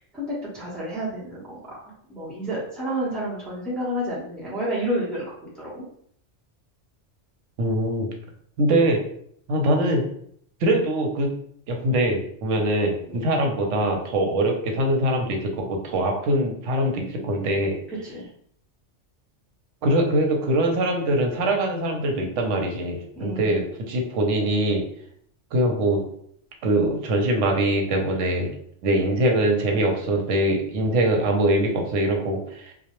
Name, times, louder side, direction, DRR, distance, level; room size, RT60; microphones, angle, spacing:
voice 1, 0.1-5.8 13.1-13.2 17.9-18.3 23.2-23.7, equal, ahead, -7 dB, 0.6 m, -30 dB
voice 2, 7.6-8.1 8.6-9.0 9.5-10.0 10.6-11.3 11.7-17.7 19.8-24.8 25.5-26.0 26.6-28.5 28.8-32.7, right 1 dB, 80° right, 2 dB, 0.9 m, -23 dB
2.2 x 2.0 x 2.8 m, 0.66 s
omnidirectional pair, 1.2 m